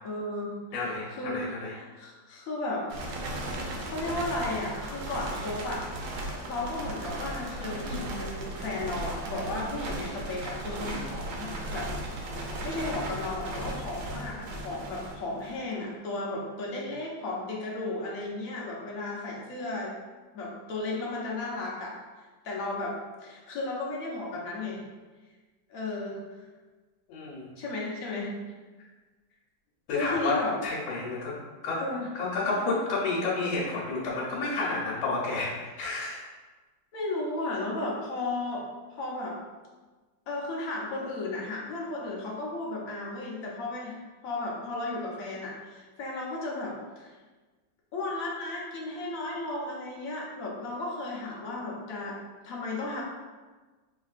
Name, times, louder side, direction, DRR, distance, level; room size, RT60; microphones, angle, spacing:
voice 1, 0.0-0.6 0.8-1.4 1.7-2.9 3.8-5.8 6.4-12.2 12.6-19.9 20.3-21.9 22.4-24.8 25.7-26.2 27.6-28.3 29.9-30.5 31.8-32.1 36.9-38.6 38.9-39.4 40.3-44.0 44.2-47.1 47.9-52.2 52.4-53.0, left 2 dB, 55° left, -3 dB, 1.0 m, -34 dB
voice 2, 0.7-1.7 27.1-27.5 29.9-30.4 30.6-31.3 31.6-31.8 32.1-36.2, left 3 dB, 75° left, -6 dB, 1.5 m, -30 dB
sound 1, 2.9-15.7, right 1 dB, 80° right, 1.4 m, -36 dB
5.4 x 2.8 x 2.4 m, 1.3 s
omnidirectional pair, 2.2 m